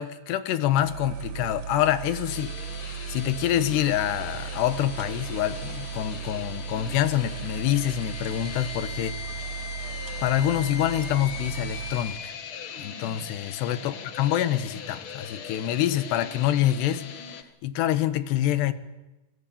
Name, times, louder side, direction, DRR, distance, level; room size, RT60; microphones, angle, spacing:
voice 1, 0.0-2.6 3.1-9.2 10.2-12.3 12.8-17.1 17.6-18.7, left 12 dB, 85° left, 3.4 m, -26 dB
sound 1, 0.7-12.2, right 9 dB, 55° right, 2.6 m, -37 dB
sound 2, 2.3-17.4, left 7 dB, 55° left, 1.5 m, -40 dB
29.0 x 22.0 x 8.6 m
omnidirectional pair, 4.7 m